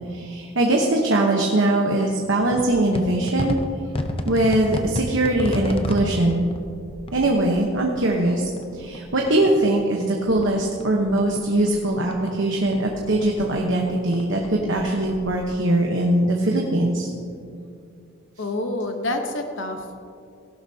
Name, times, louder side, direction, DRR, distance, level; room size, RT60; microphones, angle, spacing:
voice 1, 0.1-3.6 4.2-6.5 7.1-17.1, right 1 dB, 65° right, 0 dB, 1.1 m, -21 dB
sound 1, 2.5-9.8 10.0-12.4 12.6-15.6, left 1 dB, 25° left, 0.7 m, -32 dB
voice 2, 18.4-20.0, left 2 dB, 65° left, 5 dB, 1.0 m, -27 dB
17.0 x 12.0 x 2.8 m, 2.5 s
head